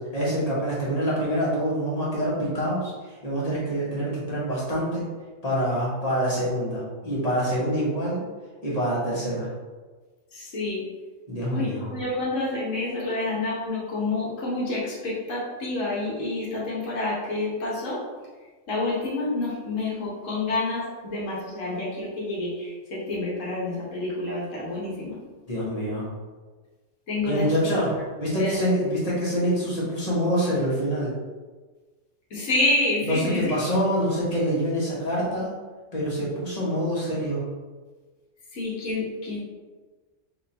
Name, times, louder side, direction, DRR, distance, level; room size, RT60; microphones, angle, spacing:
voice 1, 0.1-5.0 5.4-8.2 8.6-9.5 11.3-11.9 25.5-26.0 27.3-27.9 28.2-31.1 33.0-35.5 35.9-37.4, equal, 30° left, -7 dB, 1.5 m, -26 dB
voice 2, 10.3-10.8 11.5-18.0 18.7-25.2 27.1-27.5 27.9-28.0 28.4-28.7 32.3-33.5 38.5-39.4, left 2 dB, 85° left, -6 dB, 1.5 m, -28 dB
4.6 x 3.8 x 2.9 m, 1.3 s
omnidirectional pair, 1.3 m